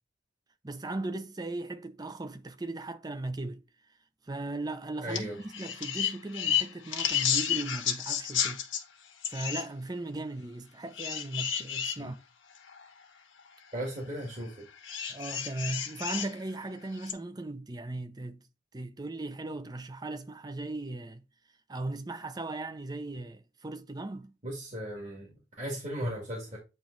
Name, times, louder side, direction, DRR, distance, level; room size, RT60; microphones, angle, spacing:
voice 1, 0.6-3.6 4.2-8.6 9.3-12.2 15.1-18.4 18.7-21.2 21.7-24.3, right 2 dB, 20° right, 0.5 m, -37 dB
voice 2, 5.0-5.4 12.0-12.1 13.7-14.7 24.4-26.6, equal, 35° right, 1.8 m, -36 dB
sound 1, 5.1-5.2 5.5-8.8 9.2-9.7 11.0-12.0 12.7-12.8 14.8-16.3 17.0-17.1, left 9 dB, 80° left, 1.2 m, -31 dB
8.9 x 3.0 x 3.8 m
head